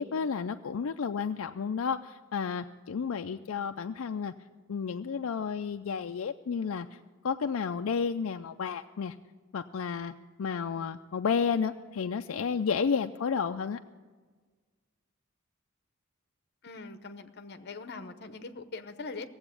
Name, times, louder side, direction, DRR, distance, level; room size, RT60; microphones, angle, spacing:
voice 1, 0.0-4.3 4.7-7.0 7.2-9.2 9.5-10.1 10.4-13.8, left 6 dB, 75° left, 7 dB, 0.4 m, -31 dB
voice 2, 16.6-19.3, left 3 dB, 50° left, 9 dB, 0.9 m, -42 dB
17.5 x 7.9 x 8.3 m, 1.4 s
head